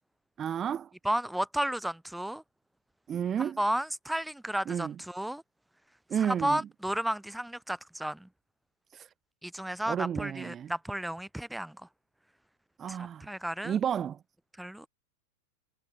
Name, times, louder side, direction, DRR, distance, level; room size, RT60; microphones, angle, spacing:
voice 1, 0.4-0.9 3.1-3.6 4.7-5.0 6.1-6.6 8.9-9.1 9.9-10.7 12.8-13.3 13.6-14.2, right 8 dB, 30° right, 1.0 m, -31 dB
voice 2, 1.0-2.4 3.4-5.4 6.2-8.3 9.4-11.8 12.9-13.8 14.6-14.9, right 1 dB, 5° right, 0.7 m, -33 dB
hypercardioid pair, 105°, 0 cm